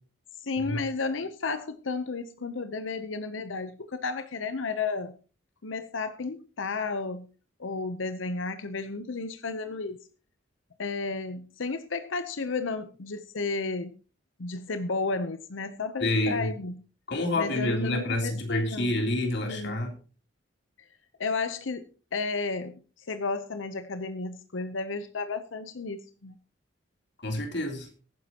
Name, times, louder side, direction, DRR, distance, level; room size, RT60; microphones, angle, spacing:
voice 1, 0.4-5.1 5.6-7.3 7.6-10.0 10.8-14.0 14.4-16.8 17.3-19.0 19.5-19.8 20.8-20.9 21.2-26.4, left 4 dB, 85° left, 11 dB, 0.8 m, -33 dB
voice 2, 16.0-16.5 17.1-19.9 27.2-27.9, left 1 dB, 60° left, 3 dB, 3.3 m, -28 dB
22.5 x 9.5 x 2.9 m, 0.37 s
head